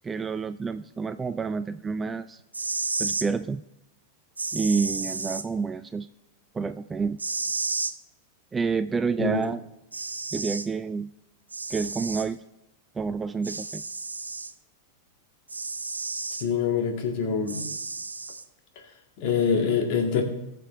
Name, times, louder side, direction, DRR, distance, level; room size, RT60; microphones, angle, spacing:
voice 1, 0.0-2.4 3.0-3.6 4.5-6.1 6.5-7.2 8.5-9.6 10.3-11.1 11.7-12.4 12.9-13.8, right 5 dB, 15° right, 12 dB, 0.4 m, -28 dB
sound 1, 2.4-3.3 4.4-5.4 7.2-7.9 9.4-9.5 9.9-10.7 11.5-12.3 13.4-14.5 15.5-16.5 17.5-18.4, right 3 dB, 80° right, 0.6 m, -32 dB
voice 2, 16.4-17.7 19.2-20.2, left 6 dB, 45° left, 3 dB, 2.2 m, -25 dB
20.0 x 6.8 x 3.4 m, 0.90 s
figure-of-eight pair, 90°, 0 cm